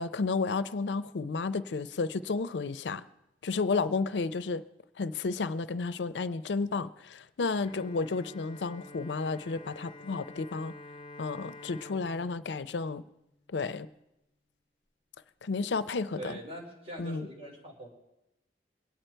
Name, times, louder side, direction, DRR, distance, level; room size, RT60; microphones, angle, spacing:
voice 1, 0.0-3.0 3.4-4.6 5.0-10.7 11.2-13.0 13.5-13.9 15.4-16.4 17.0-17.3, left 4 dB, 80° left, 14 dB, 0.5 m, -32 dB
Bowed string instrument, 7.6-13.8, left 2 dB, 30° left, 0.8 m, -49 dB
voice 2, 16.1-17.9, right 1 dB, 35° right, -2 dB, 4.1 m, -43 dB
23.0 x 9.1 x 4.5 m, 0.90 s
head